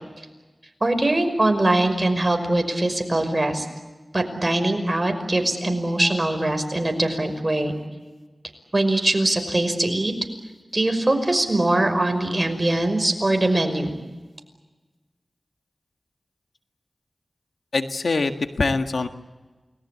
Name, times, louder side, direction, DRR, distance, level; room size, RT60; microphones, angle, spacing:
voice 1, 0.8-3.7 4.1-7.7 8.7-10.1 10.7-14.0, right 1 dB, 30° right, 6 dB, 5.6 m, -22 dB
voice 2, 17.7-19.1, left 3 dB, 80° left, 7 dB, 1.7 m, -23 dB
29.5 x 20.5 x 8.6 m, 1.2 s
wide cardioid pair, 60°, 0 cm